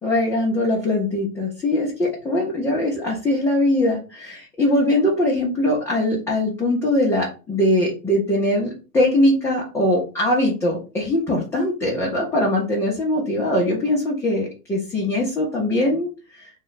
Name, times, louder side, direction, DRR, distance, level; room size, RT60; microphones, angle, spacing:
voice 1, 0.0-16.5, left 1 dB, 5° left, -4 dB, 0.3 m, -21 dB
3.0 x 2.1 x 3.9 m, 0.32 s
hypercardioid pair, 110°, 47 cm